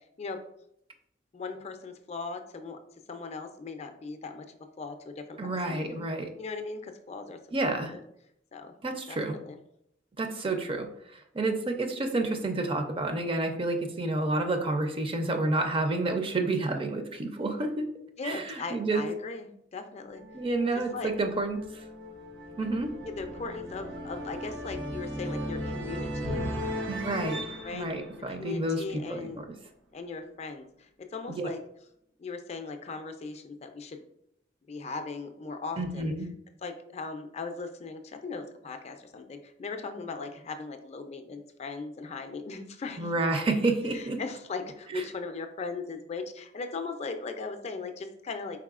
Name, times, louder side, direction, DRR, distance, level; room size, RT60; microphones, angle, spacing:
voice 1, 1.3-2.8 3.1-5.8 6.4-7.4 7.6-8.0 8.5-8.7 9.1-9.6 18.2-20.2 20.7-21.1 23.0-26.4 27.6-27.9 28.4-29.4 29.9-31.6 32.2-34.0 34.7-36.1 36.6-43.1 43.9-48.6, left 4 dB, 35° left, 7 dB, 0.4 m, -38 dB
voice 2, 5.4-6.3 7.5-7.9 8.8-9.4 10.2-10.9 11.1-17.9 18.2-19.1 20.3-21.8 22.6-22.9 26.9-27.4 27.7-29.4 31.3-31.5 35.8-36.3 43.0-44.2 44.9-45.0, right 2 dB, 30° right, 5 dB, 0.4 m, -29 dB
sound 1, 20.1-29.1, equal, 85° right, 0.9 m, -37 dB
4.7 x 4.1 x 2.4 m, 0.74 s
head